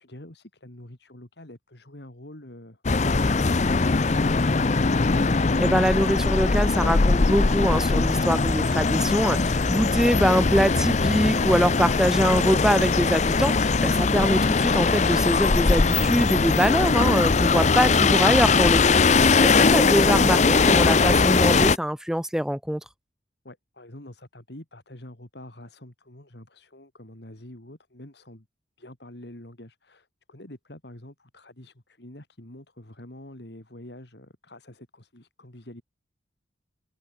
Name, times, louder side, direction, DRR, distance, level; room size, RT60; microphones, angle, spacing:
voice 1, 0.0-2.8 23.4-28.5 28.8-35.8, left 1 dB, 60° left, 2.7 m, -46 dB
sound 1, 2.8-21.8, left 4 dB, 40° left, 0.6 m, -21 dB
voice 2, 5.6-22.8, equal, 5° right, 0.6 m, -24 dB
open air
head